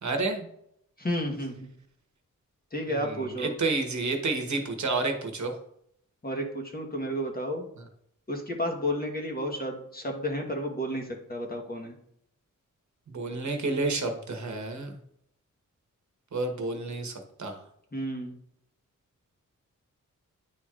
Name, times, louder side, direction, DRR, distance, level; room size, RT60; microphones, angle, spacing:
voice 1, 0.0-0.5 2.9-5.5 13.1-15.0 16.3-17.6, right 3 dB, 60° right, 4 dB, 1.1 m, -30 dB
voice 2, 1.0-1.7 2.7-3.5 6.2-7.6 8.3-11.9 17.9-18.4, equal, 30° left, 2 dB, 1.2 m, -32 dB
10.0 x 4.4 x 2.4 m, 0.72 s
wide cardioid pair, 115°, 32 cm